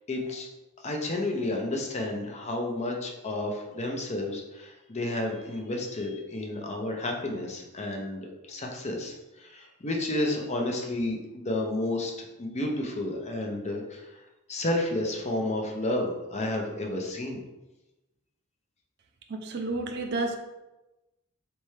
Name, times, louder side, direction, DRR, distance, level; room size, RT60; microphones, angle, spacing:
voice 1, 0.1-0.5 0.8-14.1 14.5-17.4, left 1 dB, 30° left, 1 dB, 0.6 m, -31 dB
voice 2, 19.3-20.4, right 2 dB, 50° right, 4 dB, 0.5 m, -30 dB
4.2 x 3.4 x 3.2 m, 1.0 s
head